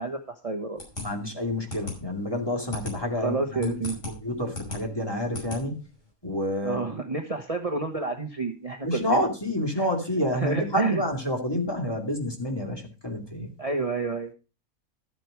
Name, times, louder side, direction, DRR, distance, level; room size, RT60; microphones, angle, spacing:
voice 1, 0.0-0.9 3.2-4.0 6.6-9.2 9.7-9.9 10.3-11.0 13.6-14.3, right 3 dB, 30° right, 4 dB, 1.1 m, -29 dB
sound 1, 0.8-6.1, left 2 dB, 65° left, 5.6 m, -39 dB
voice 2, 1.0-5.8 6.2-6.8 8.8-13.5, left 1 dB, 20° left, 2 dB, 2.3 m, -28 dB
12.5 x 7.6 x 4.8 m, 0.31 s
omnidirectional pair, 1.4 m